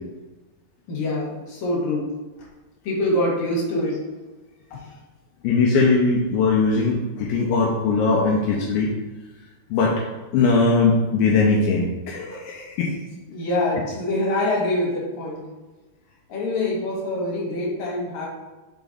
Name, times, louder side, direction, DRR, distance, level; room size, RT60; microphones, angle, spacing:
voice 1, 0.9-2.1 2.8-4.0 4.7-4.8 13.3-15.4 16.3-18.3, left 1 dB, 55° left, -3 dB, 2.5 m, -25 dB
voice 2, 5.4-8.9 9.7-10.0 10.3-13.0, left 4 dB, 80° left, -3 dB, 2.2 m, -20 dB
6.1 x 4.6 x 4.0 m, 1.2 s
omnidirectional pair, 4.8 m